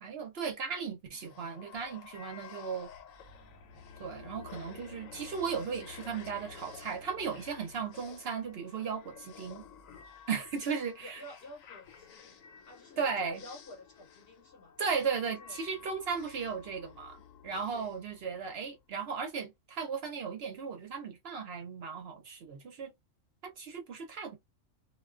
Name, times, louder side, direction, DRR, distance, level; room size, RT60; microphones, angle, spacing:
voice 1, 0.0-2.9 4.0-9.6 10.3-11.2 13.0-13.4 14.8-22.9 23.4-24.4, right 6 dB, 60° right, 0.7 m, -36 dB
sound 1, 1.1-18.8, left 7 dB, 80° left, 1.1 m, -52 dB
voice 2, 10.8-14.8 15.3-15.6 17.5-17.9, left 1 dB, 55° left, 0.8 m, -51 dB
2.3 x 2.2 x 2.4 m
omnidirectional pair, 1.4 m